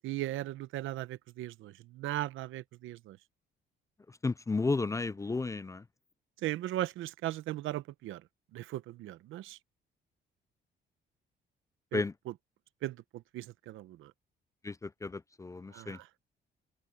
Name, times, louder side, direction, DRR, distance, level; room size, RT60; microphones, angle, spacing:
voice 1, 0.0-3.2 6.4-8.2 8.5-9.6 11.9-12.0 12.8-14.1 15.7-16.1, right 15 dB, 85° right, 0.9 m, -38 dB
voice 2, 4.1-5.8 11.9-12.1 14.6-16.0, left 3 dB, 15° left, 0.4 m, -33 dB
cardioid pair, 90°, 20 cm